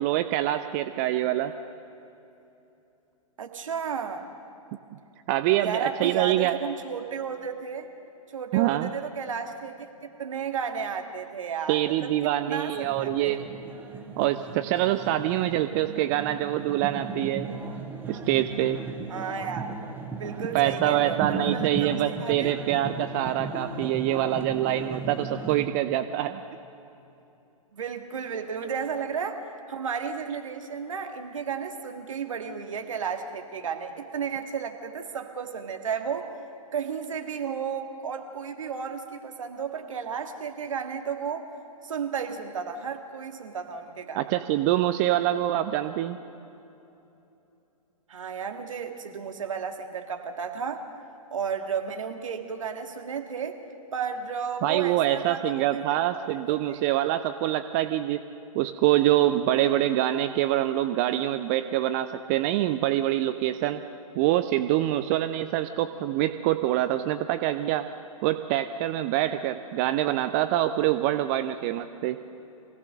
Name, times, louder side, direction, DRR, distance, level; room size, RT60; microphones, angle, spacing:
voice 1, 0.0-1.5 5.3-6.6 8.5-8.9 11.7-13.4 14.2-17.5 18.1-18.8 20.5-26.4 44.1-46.2 54.6-58.2 58.5-63.8 64.2-67.9 68.2-72.2, right 13 dB, 25° right, 10 dB, 0.5 m, -25 dB
voice 2, 3.4-4.2 5.6-7.9 8.3-9.9 10.2-12.7 13.0-13.4 19.1-19.7 20.2-22.5 27.7-36.3 36.7-41.4 41.8-44.2 48.1-50.8 51.3-53.6 53.9-55.8 56.3-56.8, right 6 dB, 60° right, 5 dB, 1.9 m, -33 dB
sound 1, 12.7-25.7, right 3 dB, 10° right, 1.2 m, -36 dB
23.5 x 17.0 x 6.6 m, 2.9 s
figure-of-eight pair, 115°, 19 cm